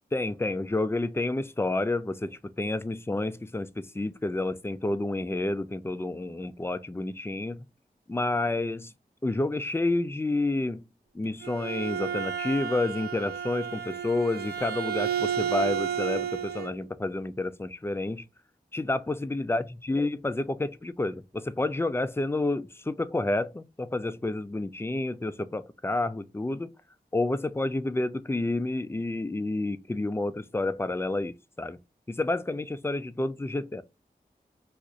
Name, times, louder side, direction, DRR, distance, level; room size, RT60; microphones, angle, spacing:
voice 1, 0.1-7.6 8.1-8.9 9.2-10.8 11.1-18.3 18.7-26.7 27.1-31.8 32.1-33.8, left 2 dB, 15° left, 0.4 m, -29 dB
Bowed string instrument, 11.2-16.8, right 8 dB, 75° right, 0.5 m, -32 dB
2.5 x 2.4 x 4.0 m
wide cardioid pair, 60°, 16 cm